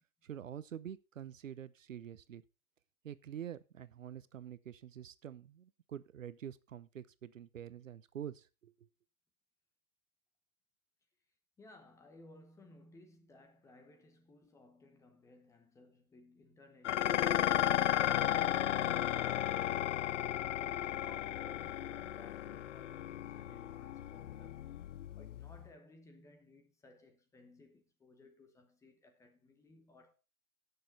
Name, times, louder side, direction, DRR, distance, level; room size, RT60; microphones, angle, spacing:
voice 1, 0.2-2.4 3.0-8.9, right 9 dB, 65° right, 0.9 m, -47 dB
voice 2, 11.6-19.0 20.5-24.7 25.2-30.1, left 2 dB, 5° left, 1.1 m, -60 dB
Dishes pots and pans, 16.8-25.7, left 11 dB, 60° left, 0.5 m, -34 dB
16.5 x 6.8 x 4.0 m
figure-of-eight pair, 130°, 42 cm